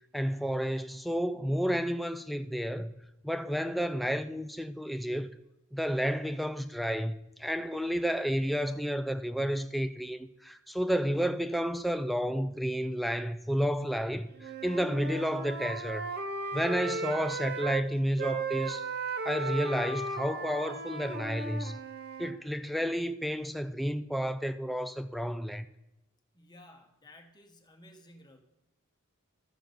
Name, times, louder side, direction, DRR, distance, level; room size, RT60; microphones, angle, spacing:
voice 1, 0.1-2.9 3.2-5.3 5.7-16.1 16.5-18.9 19.2-21.8 22.2-25.7, equal, ahead, 0.3 m, -31 dB
Wind instrument woodwind instrument, 14.4-17.9 18.2-22.4, right 3 dB, 50° right, 0.6 m, -36 dB
voice 2, 26.3-28.4, left 1 dB, 20° left, 1.1 m, -55 dB
13.0 x 7.0 x 3.9 m
head